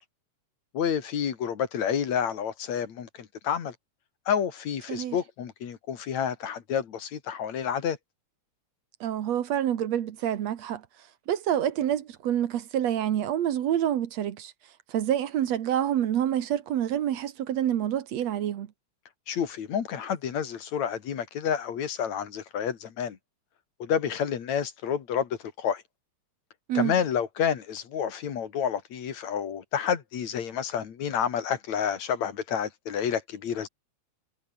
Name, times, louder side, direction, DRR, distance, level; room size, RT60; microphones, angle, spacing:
voice 1, 0.7-3.7 4.3-8.0 19.3-23.2 23.8-25.8 26.7-33.7, left 8 dB, 70° left, 3.4 m, -29 dB
voice 2, 9.0-10.8 11.3-14.5 14.9-18.7 26.7-26.9, right 10 dB, 65° right, 2.4 m, -27 dB
omnidirectional pair, 3.3 m